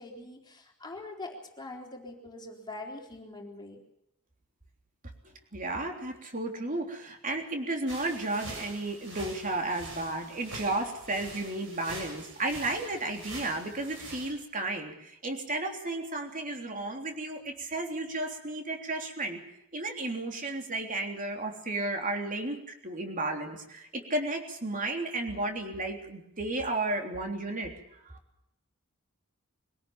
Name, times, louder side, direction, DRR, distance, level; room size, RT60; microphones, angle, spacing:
voice 1, 0.0-3.8, left 2 dB, 20° left, 1 dB, 3.9 m, -43 dB
voice 2, 5.5-19.4 19.7-27.7 28.0-28.1, right 2 dB, 40° right, 3 dB, 3.4 m, -33 dB
sound 1, 7.9-14.3, right 2 dB, 60° right, 7.9 m, -44 dB
23.5 x 17.5 x 7.2 m, 0.79 s
head